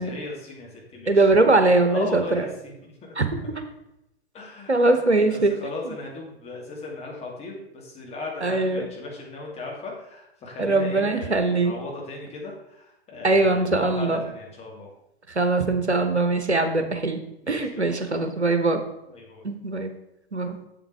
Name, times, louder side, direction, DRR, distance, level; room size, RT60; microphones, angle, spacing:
voice 1, 0.0-1.3 1.6-3.1 4.3-14.9 17.4-18.1 18.4-18.6 19.1-19.4, left 3 dB, 20° left, -2 dB, 2.5 m, -37 dB
voice 2, 1.1-2.4 3.2-3.3 4.7-5.5 5.8-5.9 8.4-8.9 10.6-11.7 13.2-14.2 15.3-17.2 17.5-18.8 19.4-19.9 20.3-20.6, right 2 dB, 90° right, 7 dB, 1.1 m, -21 dB
7.8 x 7.4 x 4.7 m, 0.86 s
figure-of-eight pair, 105°, 33 cm